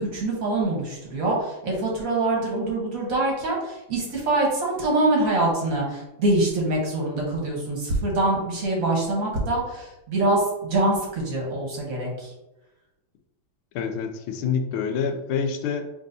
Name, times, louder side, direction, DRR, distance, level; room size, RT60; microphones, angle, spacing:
voice 1, 0.0-12.3, right 2 dB, 50° right, -2 dB, 1.3 m, -24 dB
voice 2, 13.7-15.9, left 6 dB, 80° left, 5 dB, 1.4 m, -27 dB
4.6 x 3.5 x 2.6 m, 0.97 s
omnidirectional pair, 2.4 m